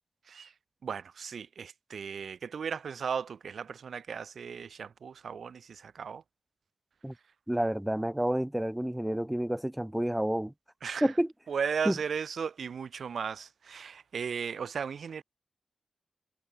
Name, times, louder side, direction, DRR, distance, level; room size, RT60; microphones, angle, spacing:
voice 1, 0.8-6.2 10.8-11.1 11.5-15.2, right 6 dB, 90° right, 4.0 m, -36 dB
voice 2, 7.5-10.5 11.0-11.3 11.8-11.9, right 1 dB, 10° right, 3.0 m, -29 dB
wide cardioid pair, 100°, 0 cm